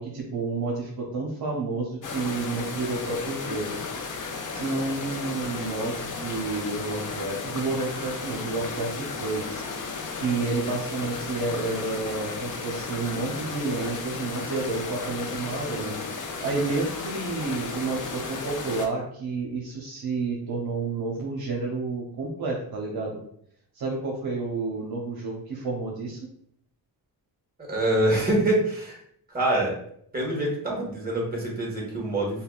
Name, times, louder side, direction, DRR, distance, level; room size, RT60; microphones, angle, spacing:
voice 1, 0.0-3.8 4.5-23.2 23.7-26.2, right 3 dB, 60° right, -1 dB, 0.8 m, -30 dB
sound 1, 2.0-18.9, left 4 dB, 50° left, 0.7 m, -34 dB
voice 2, 27.7-29.0 29.3-29.8 30.1-32.4, right 1 dB, 20° right, -2 dB, 1.5 m, -25 dB
5.5 x 2.3 x 2.4 m, 0.68 s
wide cardioid pair, 110°, 41 cm